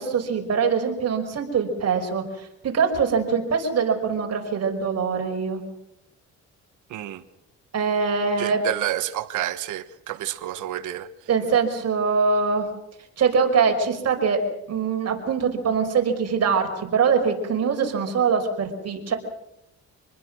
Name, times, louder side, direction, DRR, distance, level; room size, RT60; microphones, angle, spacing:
voice 1, 0.0-5.6 7.7-8.6 11.3-12.7 13.2-14.4 14.7-19.1, right 5 dB, 55° right, 5.2 m, -23 dB
voice 2, 6.9-7.2 8.4-11.1, right 13 dB, 85° right, 1.5 m, -29 dB
26.5 x 20.5 x 6.3 m
cardioid pair, 90°, 30 cm